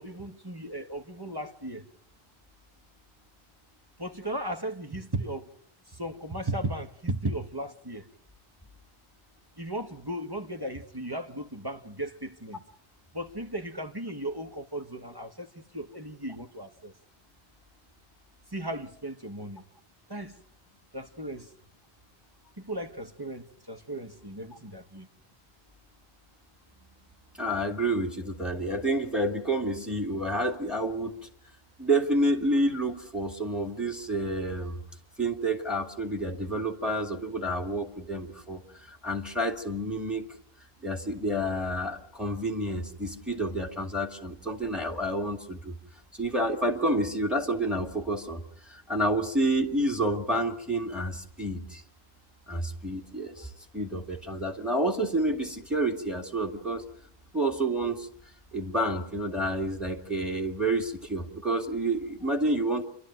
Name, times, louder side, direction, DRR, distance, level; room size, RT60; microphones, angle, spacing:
voice 1, 0.0-1.9 4.0-5.5 5.9-8.1 9.6-12.6 13.1-16.9 18.5-19.6 20.1-20.4 20.9-21.5 22.6-25.1 28.0-28.1, right 1 dB, 20° right, 1.1 m, -36 dB
voice 2, 27.4-31.2 31.8-34.8 35.2-38.6 38.9-40.2 40.8-45.7 46.1-51.8 52.5-56.8 57.3-58.1 58.5-62.8, right 1 dB, ahead, 2.2 m, -29 dB
29.0 x 12.0 x 9.0 m
omnidirectional pair, 1.1 m